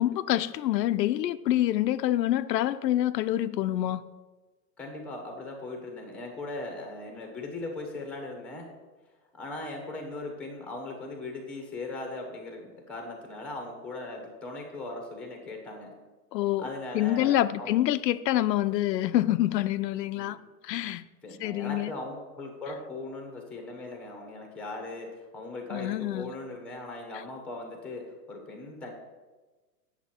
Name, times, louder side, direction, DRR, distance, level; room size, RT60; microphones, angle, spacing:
voice 1, 0.0-4.0 16.3-16.7 16.9-20.4 20.6-21.1 21.4-21.9 25.7-26.3, left 13 dB, 80° left, 13 dB, 0.6 m, -26 dB
voice 2, 4.8-8.7 9.4-15.9 16.6-17.8 20.1-20.4 21.2-28.9, left 2 dB, ahead, 3 dB, 0.9 m, -39 dB
8.2 x 7.1 x 4.3 m, 1.2 s
hypercardioid pair, 155°, 49 cm